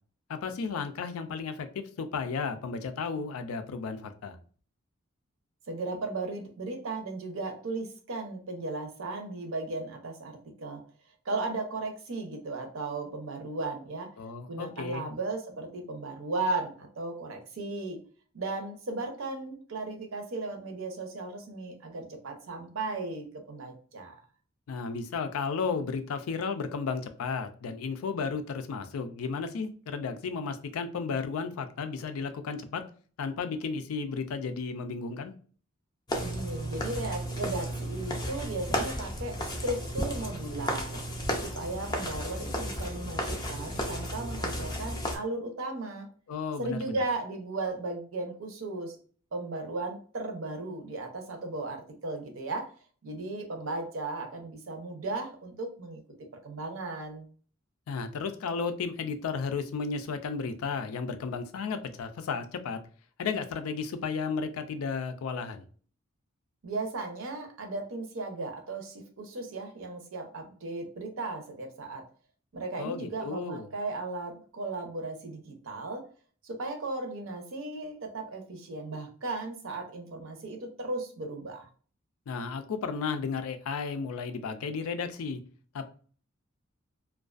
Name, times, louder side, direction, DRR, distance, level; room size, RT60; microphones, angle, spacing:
voice 1, 0.3-4.4 14.2-15.2 24.7-32.8 33.2-35.3 46.3-47.0 57.9-62.8 63.2-65.7 72.8-73.7 82.3-85.4 85.7-85.9, left 5 dB, 90° left, 8 dB, 0.4 m, -33 dB
voice 2, 5.7-10.8 11.3-14.1 14.5-18.0 18.3-24.2 36.2-41.0 41.4-46.1 46.6-49.0 49.3-52.7 53.0-56.0 56.4-57.3 66.6-72.0 72.5-76.1 76.4-81.7, right 2 dB, 70° right, 4 dB, 0.6 m, -36 dB
sound 1, 36.1-45.2, equal, 20° left, 0.4 m, -33 dB
2.4 x 2.2 x 2.4 m, 0.42 s
head